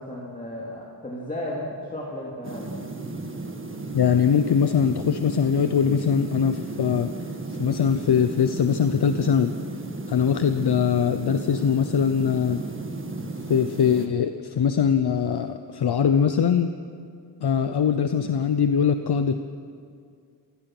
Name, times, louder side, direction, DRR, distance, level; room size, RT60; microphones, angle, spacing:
voice 1, 0.0-2.7, left 1 dB, 20° left, -3 dB, 2.5 m, -34 dB
sound 1, 2.4-14.1, right 2 dB, 25° right, 1.6 m, -34 dB
voice 2, 3.9-7.1 7.5-9.5 10.1-12.6 13.5-16.7 17.4-19.4, left 7 dB, 60° left, 9 dB, 0.8 m, -22 dB
28.0 x 17.0 x 6.0 m, 2.3 s
wide cardioid pair, 165°, 44 cm